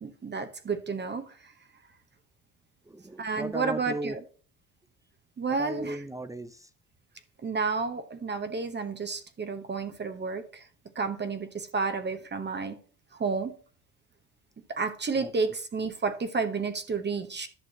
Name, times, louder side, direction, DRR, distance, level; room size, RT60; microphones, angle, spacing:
voice 1, 0.0-1.5 3.2-4.2 5.4-6.0 7.4-10.7 10.9-12.8 13.1-13.5 14.7-17.5, right 4 dB, 25° right, 1.0 m, -31 dB
voice 2, 2.9-4.2 5.6-6.7 15.2-15.3, right 1 dB, 10° right, 0.6 m, -36 dB
11.0 x 6.2 x 2.9 m
supercardioid pair, 75°, 38 cm